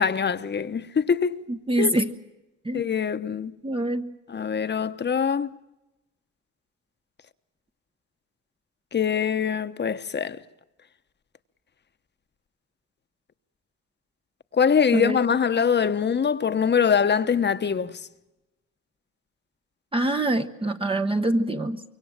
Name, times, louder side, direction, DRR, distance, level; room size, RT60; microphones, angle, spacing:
voice 1, 0.0-1.4 1.8-1.9 2.7-3.5 4.3-5.5 8.9-10.4 14.5-18.0, left 7 dB, 35° left, 1.1 m, -23 dB
voice 2, 1.5-2.1 2.6-2.8 3.6-4.1 14.9-15.2 19.9-21.8, right 1 dB, 20° right, 1.0 m, -25 dB
25.5 x 23.0 x 7.4 m
cardioid pair, 90°, 30 cm